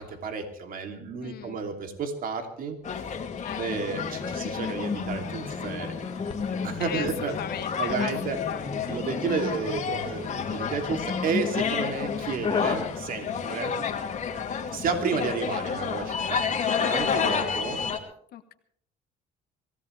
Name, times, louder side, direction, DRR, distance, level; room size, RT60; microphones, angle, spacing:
voice 1, 0.0-2.8 3.6-5.9 6.6-7.3 7.8-8.4 8.9-13.7 14.7-16.4 16.8-17.8, right 5 dB, 55° right, 5 dB, 3.0 m, -31 dB
voice 2, 1.2-1.6 3.4-3.7 6.8-9.0 13.3-13.6 18.3-18.5, left 10 dB, 65° left, 9 dB, 1.3 m, -38 dB
sound 1, 2.8-18.0, left 6 dB, 45° left, 2.5 m, -31 dB
sound 2, 3.9-14.4 15.3-15.8, left 5 dB, 30° left, 1.8 m, -34 dB
25.0 x 16.0 x 3.4 m, 0.65 s
cardioid pair, 110°, 17 cm